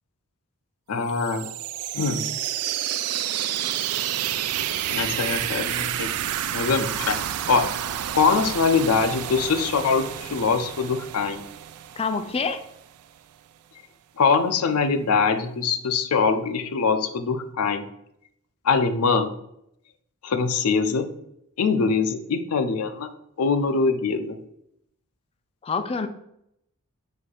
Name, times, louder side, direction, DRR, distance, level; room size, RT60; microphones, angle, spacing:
voice 1, 0.9-1.5 1.9-2.3 4.9-6.1 6.5-7.7 8.1-11.4 14.2-17.8 18.6-19.3 20.2-21.1 21.6-23.1 23.4-24.4, left 5 dB, 90° left, 9 dB, 0.5 m, -23 dB
sound 1, 1.0-12.7, right 11 dB, 85° right, 0.3 m, -30 dB
voice 2, 12.0-12.6 25.6-26.1, left 4 dB, 25° left, 8 dB, 0.4 m, -26 dB
4.2 x 2.6 x 4.7 m, 0.76 s
head